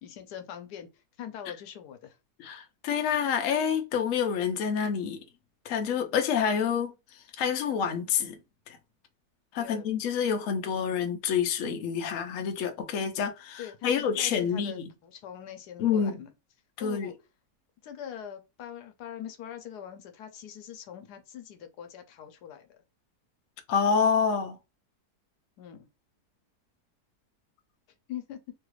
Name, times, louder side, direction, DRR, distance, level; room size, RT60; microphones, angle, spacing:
voice 1, 0.0-0.9 1.2-2.2 9.6-9.9 13.6-16.3 16.8-17.1 17.8-22.8 25.6-25.8 28.1-28.4, left 10 dB, 80° left, 1.2 m, -42 dB
voice 2, 2.4-5.2 5.6-8.4 8.7-8.8 9.5-14.9 15.8-16.2 16.8-17.1 23.7-24.6, left 7 dB, 65° left, 0.9 m, -28 dB
3.2 x 2.4 x 3.0 m
omnidirectional pair, 1.7 m